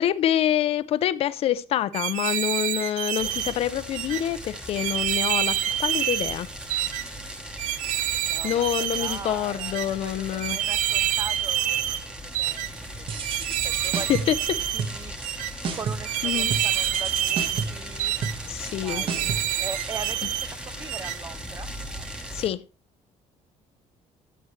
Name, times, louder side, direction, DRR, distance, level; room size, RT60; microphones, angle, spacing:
voice 1, 0.0-6.5 8.4-10.6 13.8-14.6 16.2-16.5 18.5-19.0 22.3-22.6, left 11 dB, 45° left, 0.5 m, -26 dB
sound 1, 1.9-3.5 3.9-4.2 4.8-6.4 6.7-7.0 7.6-9.2 9.6-9.9 10.4-12.0 12.3-12.7 13.2-14.8 15.2-15.5 16.0-17.7 18.0-18.3 18.9-20.5 20.9-21.2, right 12 dB, 75° right, 0.6 m, -27 dB
sound 2, 3.2-22.5, equal, 5° right, 1.1 m, -38 dB
voice 2, 8.3-14.3 14.7-15.1 15.7-18.1 18.8-21.7, right 5 dB, 25° right, 0.4 m, -41 dB
sound 3, 13.1-14.4 14.8-15.4 15.6-16.1 16.5-20.5, right 5 dB, 40° right, 1.3 m, -33 dB
13.5 x 7.8 x 3.2 m
cardioid pair, 175°, 13 cm